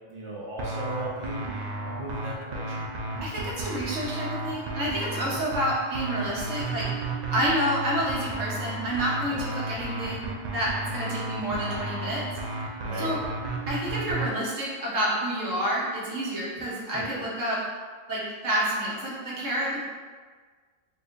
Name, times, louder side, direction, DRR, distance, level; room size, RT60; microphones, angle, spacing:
voice 1, 0.1-2.9 5.1-5.4 9.3-9.4 12.8-13.1 16.6-17.0, right 1 dB, 30° right, -6 dB, 0.7 m, -38 dB
sound 1, 0.6-14.3, right 2 dB, 70° right, 0.4 m, -33 dB
voice 2, 3.2-6.9 7.3-10.3 10.5-12.2 13.0-13.2 13.7-17.6 18.1-19.8, equal, 90° right, -6 dB, 1.3 m, -29 dB
4.3 x 2.5 x 2.5 m, 1.5 s
omnidirectional pair, 1.3 m